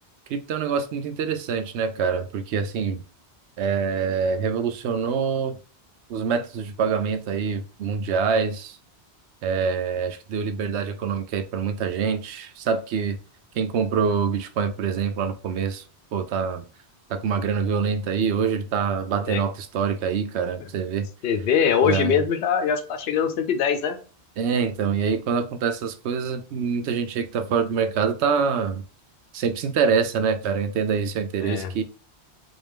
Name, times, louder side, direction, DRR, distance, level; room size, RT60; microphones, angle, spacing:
voice 1, 0.3-3.0 3.6-5.5 6.1-8.8 9.4-13.2 13.5-15.8 16.1-16.6 17.1-21.1 21.8-22.2 24.4-28.8 29.3-31.8, right 6 dB, 85° right, 0.9 m, -25 dB
voice 2, 21.2-24.0 31.4-31.7, left 7 dB, 70° left, 0.9 m, -22 dB
3.8 x 2.6 x 3.5 m
omnidirectional pair, 1.1 m